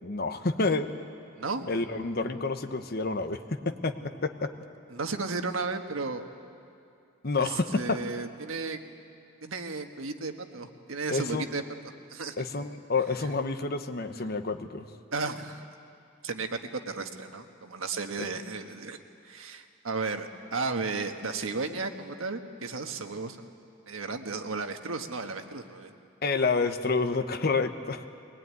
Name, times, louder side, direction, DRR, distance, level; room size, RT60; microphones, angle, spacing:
voice 1, 0.0-1.0 1.7-3.4 3.6-4.0 4.2-4.5 7.2-8.0 11.1-11.4 12.4-14.9 18.2-18.3 26.2-28.1, left 3 dB, 50° left, 8 dB, 1.1 m, -28 dB
voice 2, 1.4-1.7 4.9-6.2 7.4-8.8 9.4-11.6 12.1-12.5 15.1-15.6 16.2-19.0 19.2-23.5 23.9-25.9, right 4 dB, 85° right, 6 dB, 1.4 m, -34 dB
22.0 x 19.5 x 9.5 m, 2.4 s
head